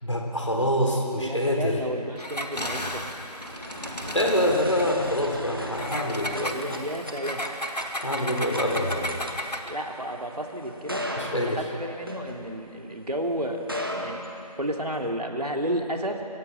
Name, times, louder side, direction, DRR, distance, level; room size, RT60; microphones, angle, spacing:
voice 1, 0.0-1.8 4.1-6.8 8.0-9.2 11.2-11.6, equal, 50° left, 0 dB, 3.8 m, -26 dB
voice 2, 0.8-3.3 6.2-7.5 9.6-14.3 14.6-16.2, right 1 dB, 70° right, 2 dB, 2.9 m, -32 dB
Engine, 2.2-4.9 5.7-9.8, equal, 80° left, 2.0 m, -34 dB
sound 1, 2.8-12.9 13.5-15.0, equal, 35° right, 1.6 m, -37 dB
26.0 x 15.5 x 7.6 m, 2.7 s
figure-of-eight pair, 175°, 21 cm